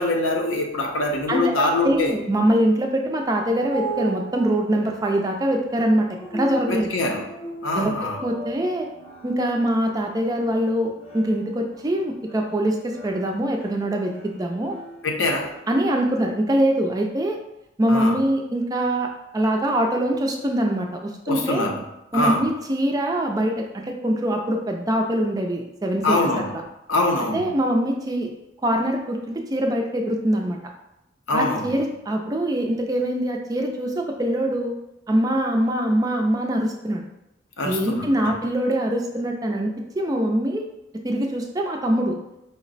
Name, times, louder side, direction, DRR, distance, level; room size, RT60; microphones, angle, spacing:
voice 1, 0.0-2.1 6.7-7.2 7.6-8.2 15.0-15.5 17.9-18.2 21.3-21.8 22.1-22.4 26.0-26.5 26.9-27.5 31.3-31.8 37.6-38.3, left 2 dB, 80° left, 2 dB, 0.7 m, -24 dB
voice 2, 1.3-6.1 6.3-6.9 7.8-8.9 9.2-14.8 15.7-17.4 17.8-19.1 19.3-21.7 22.1-26.2 26.5-26.6 27.3-28.3 28.6-30.6 31.3-34.7 35.1-37.0 37.6-40.6 41.0-42.2, right 1 dB, 20° right, 2 dB, 0.3 m, -23 dB
sound 1, 3.4-16.1, right 3 dB, 30° left, 0.7 m, -39 dB
5.0 x 2.0 x 3.9 m, 0.88 s
head